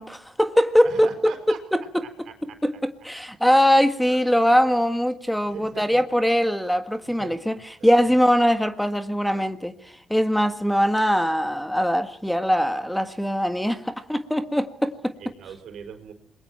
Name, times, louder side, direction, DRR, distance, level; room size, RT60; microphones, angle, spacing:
voice 1, 0.0-2.0 2.6-15.1, equal, 5° left, 10 dB, 1.6 m, -22 dB
voice 2, 0.8-1.6 2.0-2.1 2.5-2.6 4.1-4.5 5.4-6.0 7.2-7.6 15.2-16.1, right 7 dB, 75° right, 7 dB, 4.7 m, -40 dB
28.0 x 21.5 x 4.5 m, 0.65 s
cardioid pair, 90°, 0 cm